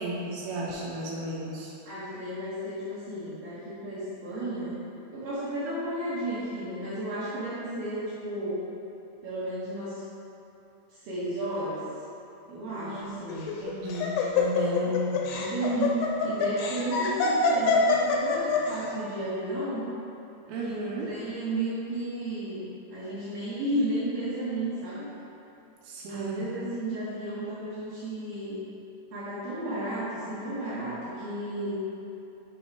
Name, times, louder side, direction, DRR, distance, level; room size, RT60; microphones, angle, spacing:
voice 1, 0.0-1.7 12.7-13.2 13.6-14.9 20.5-21.1 25.8-26.5, right 2 dB, 80° right, -4 dB, 2.7 m, -34 dB
voice 2, 1.9-4.8 5.1-8.7 9.2-10.0 10.9-11.9 12.5-13.6 14.3-15.9 16.2-19.9 20.6-25.1 26.1-28.6 29.1-31.8, right 1 dB, 65° right, -11 dB, 2.3 m, -33 dB
Laughter, 13.3-18.8, left 5 dB, 85° left, 2.8 m, -25 dB
8.2 x 3.1 x 4.6 m, 2.9 s
omnidirectional pair, 5.4 m